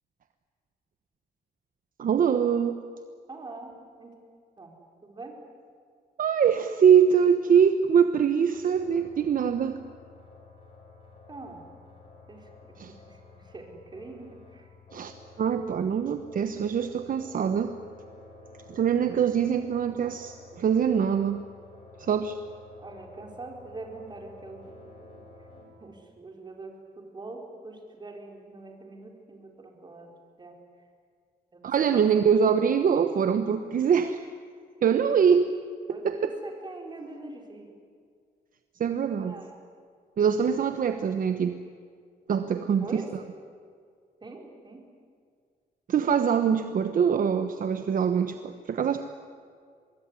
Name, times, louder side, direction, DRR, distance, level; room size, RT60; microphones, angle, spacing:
voice 1, 2.0-2.8 6.2-9.8 12.8-12.9 14.9-15.1 15.4-17.7 18.7-21.4 22.0-22.4 31.6-34.3 34.8-35.5 35.9-36.2 38.8-39.4 40.2-41.6 42.3-43.0 45.9-49.0, right 7 dB, 55° right, 9 dB, 1.1 m, -23 dB
voice 2, 3.3-4.2 4.6-4.8 5.0-5.4 11.3-11.7 12.3-14.7 22.8-24.9 25.8-30.1 30.4-30.6 31.5-32.3 35.9-37.8 39.2-39.5 42.8-43.1 44.2-44.8, right 2 dB, 25° right, 2 dB, 4.6 m, -43 dB
sound 1, 8.5-25.6, left 3 dB, 35° left, 5.9 m, -52 dB
24.5 x 21.5 x 9.8 m, 2.1 s
wide cardioid pair, 135°, 17 cm